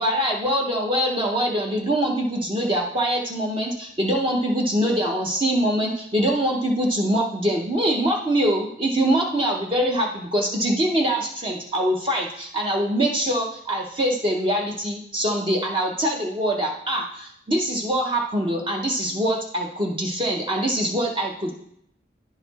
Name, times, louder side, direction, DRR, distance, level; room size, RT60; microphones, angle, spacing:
voice 1, 0.0-21.6, right 1 dB, 30° right, 0 dB, 0.7 m, -23 dB
10.0 x 4.1 x 4.0 m, 0.70 s
head